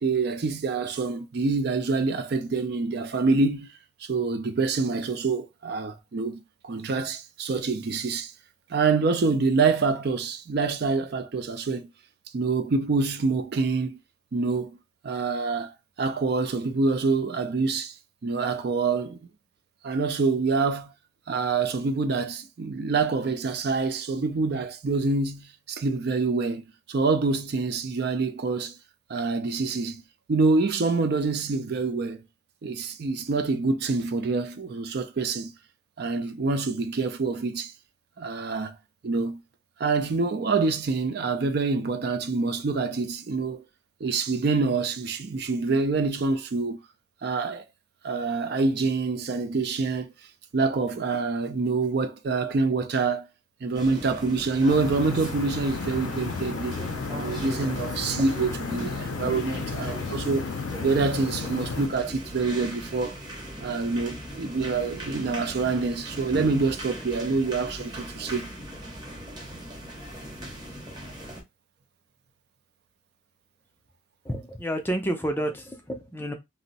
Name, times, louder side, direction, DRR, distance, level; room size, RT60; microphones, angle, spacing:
voice 1, 0.0-3.7 4.0-8.3 8.7-11.9 12.3-14.0 14.3-14.8 15.0-17.9 18.2-19.2 19.8-20.9 21.3-28.8 29.1-30.0 30.3-32.2 32.6-35.5 36.0-37.7 38.2-38.8 39.0-39.4 39.8-43.6 44.0-46.8 47.2-47.6 48.0-50.1 50.5-53.3 53.6-56.7 57.1-60.5 60.8-63.2 63.6-68.5, right 4 dB, 50° right, 0.4 m, -26 dB
sound 1, 53.7-71.4, equal, 20° right, 0.8 m, -39 dB
sound 2, 54.7-61.9, left 4 dB, 80° left, 0.4 m, -33 dB
voice 2, 74.2-76.3, right 1 dB, 10° left, 0.4 m, -29 dB
2.6 x 2.0 x 3.9 m
head